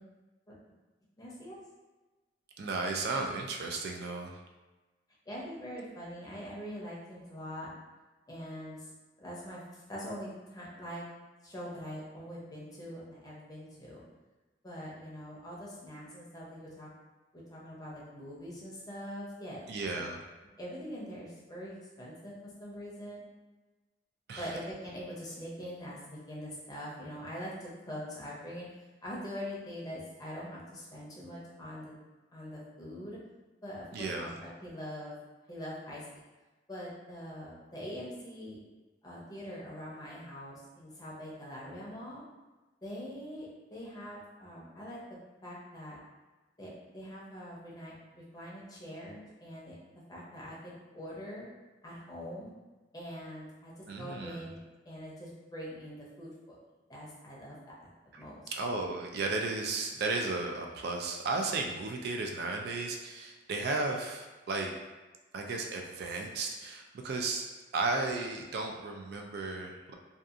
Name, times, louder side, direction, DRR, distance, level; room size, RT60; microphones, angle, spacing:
voice 1, 1.2-1.6 5.3-7.7 8.3-8.9 9.2-11.1 11.4-14.0 14.6-16.9 17.3-19.7 19.9-20.0 20.6-23.2 24.4-28.7 29.0-31.9 32.3-33.2 33.6-35.1 35.5-36.1 36.7-38.6 39.0-42.2 42.8-46.0 46.6-49.8 50.1-51.5 51.8-52.5 52.9-56.5 56.9-57.9 58.2-58.4, equal, 20° left, -6 dB, 0.6 m, -43 dB
voice 2, 2.6-4.4 19.7-20.2 24.3-24.5 33.9-34.3 53.9-54.4 58.1-58.2 58.5-64.7 65.3-67.4 67.7-69.9, right 3 dB, 60° right, 2 dB, 0.3 m, -34 dB
2.7 x 2.3 x 2.4 m, 1.2 s
head